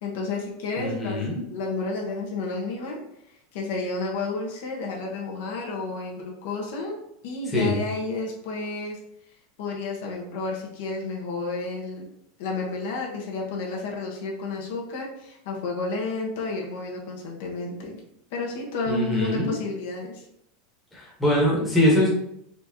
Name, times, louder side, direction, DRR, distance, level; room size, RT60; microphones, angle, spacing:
voice 1, 0.0-1.2 1.5-3.0 3.5-6.9 7.2-9.0 9.6-12.1 12.4-18.0 18.3-20.2, left 3 dB, 70° left, -1 dB, 1.0 m, -31 dB
voice 2, 0.8-1.4 7.5-7.8 18.9-19.5 20.9-22.1, left 1 dB, 5° left, -5 dB, 1.1 m, -23 dB
4.2 x 3.5 x 2.8 m, 0.76 s
supercardioid pair, 165°, 0 cm